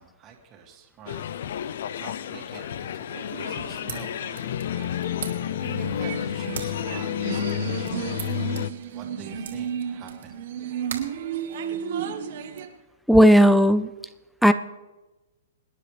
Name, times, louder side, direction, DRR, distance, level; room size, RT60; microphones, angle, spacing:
voice 1, 0.0-4.2 5.6-8.1 8.9-10.4, right 6 dB, 25° right, 1 dB, 2.3 m, -46 dB
sound 1, 1.1-8.7, left 10 dB, 60° left, 0.5 m, -30 dB
sound 2, 3.2-12.7, right 8 dB, 55° right, 1.4 m, -34 dB
sound 3, 3.5-12.1, right 8 dB, 80° right, 2.8 m, -43 dB
voice 2, 13.1-13.9 14.4-14.5, equal, ahead, 13 dB, 0.4 m, -14 dB
25.0 x 10.0 x 3.4 m, 1.1 s
hypercardioid pair, 155°, 0 cm